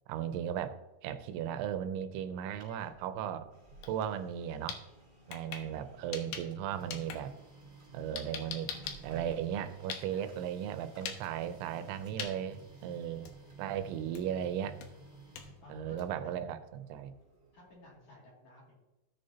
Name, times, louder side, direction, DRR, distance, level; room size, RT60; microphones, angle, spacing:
voice 1, 0.1-0.8 1.0-3.5 3.9-4.8 5.3-7.3 7.9-8.7 9.0-13.3 13.6-14.8 15.7-17.1, right 9 dB, 85° right, 10 dB, 3.1 m, -36 dB
Printer, 2.3-18.1, right 2 dB, 20° right, 3.8 m, -55 dB
sound 1, 3.8-3.9 4.3-6.6 6.9-10.3 10.9-11.2 11.5-11.9 12.2-12.3 12.8-12.9 13.2-13.6 14.1-14.4 14.8-16.2, left 7 dB, 75° left, 2.8 m, -42 dB
voice 2, 5.2-6.1 10.0-10.5 15.6-16.6 17.5-18.7, left 2 dB, 45° left, -4 dB, 3.5 m, -57 dB
16.0 x 6.6 x 2.8 m, 1.0 s
omnidirectional pair, 5.2 m